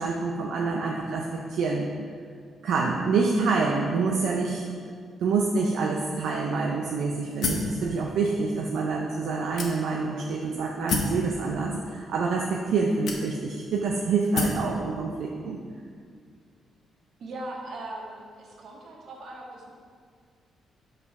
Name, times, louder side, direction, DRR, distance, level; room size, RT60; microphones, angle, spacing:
voice 1, 0.0-1.9 2.6-4.7 5.2-15.6, right 4 dB, 85° right, -1 dB, 0.6 m, -27 dB
sound 1, 7.4-7.8 8.5-8.6 9.6-10.1 10.9-11.2 12.2-12.3 13.1-13.6 14.3-14.7, left 3 dB, 70° left, 1.0 m, -28 dB
voice 2, 17.2-19.7, right 1 dB, 65° right, -1 dB, 1.5 m, -39 dB
5.9 x 5.5 x 5.3 m, 2.1 s
cardioid pair, 95°, 0 cm